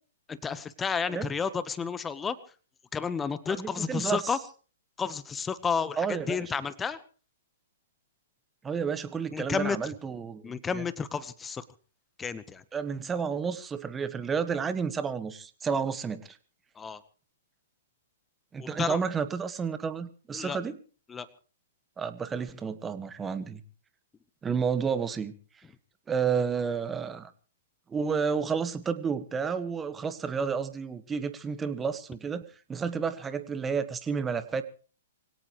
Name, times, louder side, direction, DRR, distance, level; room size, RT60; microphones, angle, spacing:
voice 1, 0.3-2.4 2.9-4.4 5.0-7.0 9.3-9.8 10.4-11.6 12.2-12.6 16.7-17.0 18.6-19.0 20.3-20.6 21.1-21.3, left 6 dB, 15° left, 15 dB, 1.2 m, -31 dB
voice 2, 3.5-4.2 6.0-6.4 8.6-10.8 12.7-16.4 18.5-20.7 22.0-23.6 24.4-25.3 26.1-27.3 27.9-34.6, right 6 dB, 15° right, 11 dB, 1.6 m, -31 dB
24.5 x 17.5 x 3.2 m, 0.38 s
hypercardioid pair, 125°, 0 cm